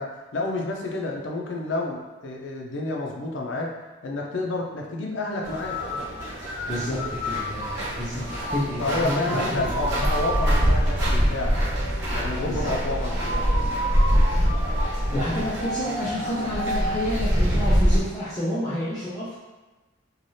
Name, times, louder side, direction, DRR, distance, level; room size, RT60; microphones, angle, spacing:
voice 1, 0.0-3.7 4.0-5.8 8.8-11.6 12.1-13.7, left 2 dB, 70° left, 0 dB, 0.5 m, -29 dB
sound 1, 5.4-18.0, equal, 65° right, 0.9 m, -24 dB
voice 2, 6.7-10.0 12.4-12.7 15.1-19.4, left 1 dB, 20° left, -10 dB, 0.5 m, -29 dB
3.2 x 2.3 x 2.6 m, 1.2 s
head